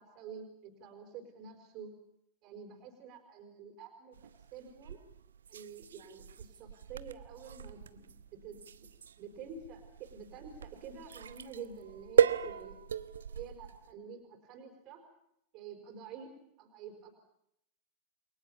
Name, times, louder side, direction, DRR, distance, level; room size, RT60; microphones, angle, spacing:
voice 1, 0.0-1.9 2.4-5.0 5.5-8.9 9.2-12.8 13.3-15.0 15.5-16.3 16.6-17.1, right 6 dB, 40° right, 5 dB, 4.9 m, -48 dB
sound 1, 4.1-13.9, right 7 dB, 70° right, 1.0 m, -35 dB
29.5 x 23.0 x 7.0 m, 0.78 s
figure-of-eight pair, 90°, 0 cm